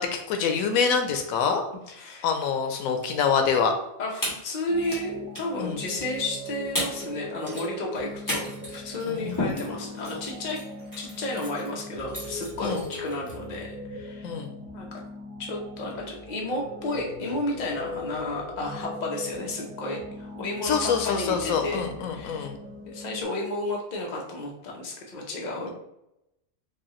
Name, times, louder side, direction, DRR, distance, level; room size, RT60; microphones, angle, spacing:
voice 1, 0.0-1.6 2.2-3.7 5.6-5.8 9.1-9.7 12.6-12.8 14.2-14.5 20.6-22.6, left 6 dB, 90° left, 5 dB, 1.0 m, -26 dB
voice 2, 1.9-2.3 4.0-10.6 11.0-14.3 14.7-15.0 15.4-22.5 22.8-25.7, left 2 dB, 40° left, -1 dB, 0.8 m, -32 dB
sound 1, 2.8-3.2 3.5-3.6 4.1-5.0 5.3-5.6 6.4-6.5 6.7-7.1 7.3-13.4, left 1 dB, 15° left, 1.3 m, -35 dB
sound 2, 4.7-23.2, left 1 dB, 45° right, 0.8 m, -40 dB
4.7 x 2.4 x 3.0 m, 0.84 s
omnidirectional pair, 1.4 m